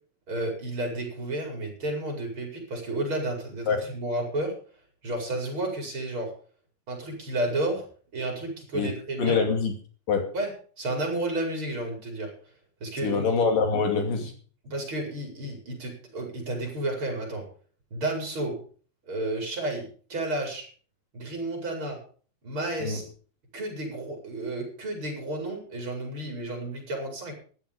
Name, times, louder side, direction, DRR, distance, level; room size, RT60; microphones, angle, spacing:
voice 1, 0.3-4.5 5.0-6.3 6.9-7.8 8.1-9.4 10.3-10.5 10.8-12.3 12.8-13.2 14.6-17.4 17.9-18.6 19.1-20.7 21.1-22.0 22.4-23.1 23.5-27.3, right 1 dB, 35° right, 1 dB, 5.7 m, -31 dB
voice 2, 9.2-9.7 10.1-10.2 13.0-14.3 22.8-23.0, left 5 dB, 70° left, 4 dB, 4.3 m, -24 dB
14.0 x 12.0 x 5.2 m, 0.42 s
omnidirectional pair, 4.0 m